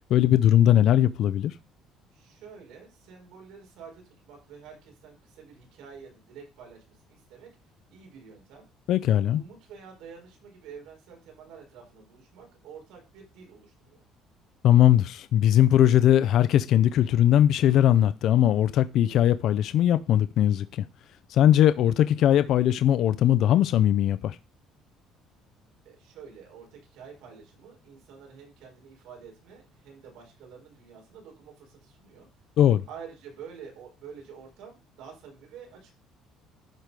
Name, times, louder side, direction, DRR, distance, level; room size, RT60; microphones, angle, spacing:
voice 1, 0.1-1.5 8.9-9.4 14.6-20.9 21.3-24.4 32.6-32.8, left 11 dB, 55° left, 0.4 m, -20 dB
voice 2, 2.1-7.5 7.9-8.6 9.3-14.0 25.8-32.3 32.9-35.9, right 6 dB, 80° right, 5.1 m, -48 dB
12.0 x 4.8 x 5.1 m
cardioid pair, 150°, 0 cm